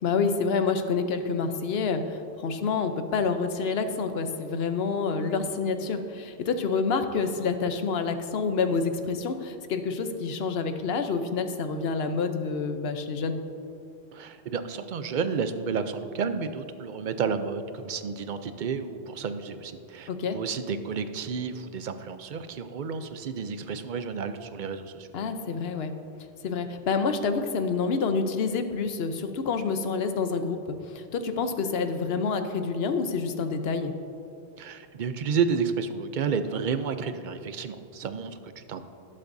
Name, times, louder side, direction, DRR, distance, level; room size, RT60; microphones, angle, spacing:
voice 1, 0.0-13.4 20.1-20.4 25.1-25.9 26.4-33.9, left 5 dB, 70° left, 8 dB, 0.9 m, -28 dB
voice 2, 14.1-25.1 34.6-38.8, right 6 dB, 55° right, 10 dB, 0.6 m, -31 dB
18.0 x 7.6 x 2.6 m, 2.6 s
omnidirectional pair, 1.1 m